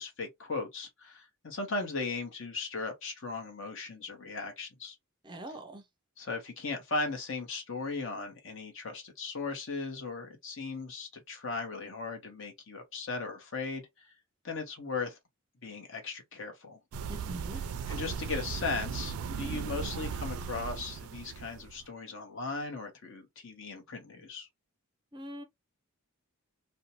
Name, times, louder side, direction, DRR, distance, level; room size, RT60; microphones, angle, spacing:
voice 1, 0.0-5.0 6.2-14.1 14.4-15.2 15.6-16.8 17.9-24.5, left 3 dB, 60° left, 1.0 m, -37 dB
voice 2, 5.2-5.8 17.1-17.6 25.1-25.4, right 1 dB, 20° right, 0.4 m, -43 dB
sound 1, 16.9-21.8, right 6 dB, 90° right, 0.3 m, -37 dB
2.6 x 2.1 x 2.9 m
head